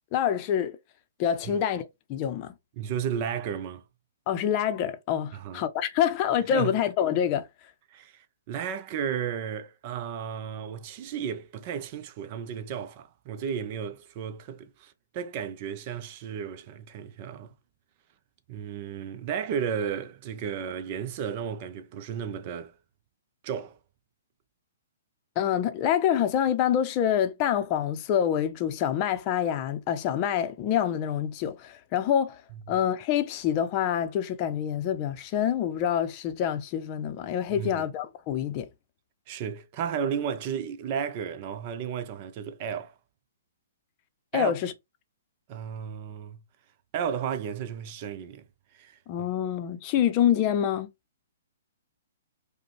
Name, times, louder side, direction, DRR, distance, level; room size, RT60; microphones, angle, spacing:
voice 1, 0.1-0.8 1.2-2.5 4.3-7.5 25.4-32.4 32.7-38.7 44.3-44.7 49.1-50.9, left 9 dB, 35° left, 0.6 m, -26 dB
voice 2, 2.8-3.8 5.3-5.6 6.5-6.7 7.9-17.5 18.5-22.7 23.4-23.8 37.5-37.8 39.3-42.9 44.3-44.5 45.5-46.4 46.9-48.4 48.7-49.3, right 8 dB, 40° right, 0.6 m, -33 dB
5.0 x 2.2 x 3.1 m
hypercardioid pair, 130°, 0 cm